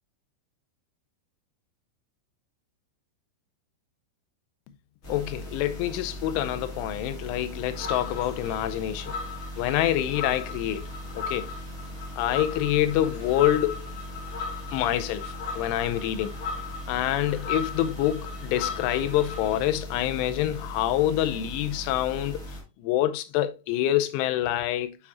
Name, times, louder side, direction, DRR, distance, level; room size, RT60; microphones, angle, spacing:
sound 1, 5.0-22.6, equal, 35° left, 2.4 m, -39 dB
voice 1, 5.1-9.2 9.6-10.8 11.2-11.5 12.2-13.8 14.7-16.4 16.9-25.0, left 13 dB, 80° left, 2.9 m, -26 dB
sound 2, 7.7-19.7, left 5 dB, 55° left, 2.7 m, -37 dB
8.7 x 4.8 x 2.8 m
omnidirectional pair, 5.9 m